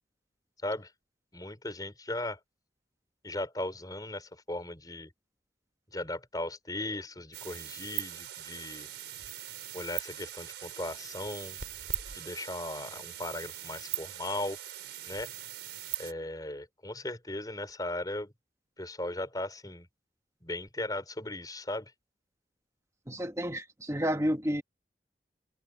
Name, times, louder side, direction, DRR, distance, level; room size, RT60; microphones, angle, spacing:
voice 1, 1.3-2.4 3.2-5.1 5.9-8.9 9.7-11.6 12.1-14.6 15.1-15.3 16.0-18.3 18.8-19.9 20.4-21.9, left 1 dB, 20° left, 4.2 m, -37 dB
sound 1, 7.3-16.1, right 13 dB, 80° right, 4.2 m, -40 dB
voice 2, 23.1-24.6, equal, 15° right, 1.5 m, -30 dB
head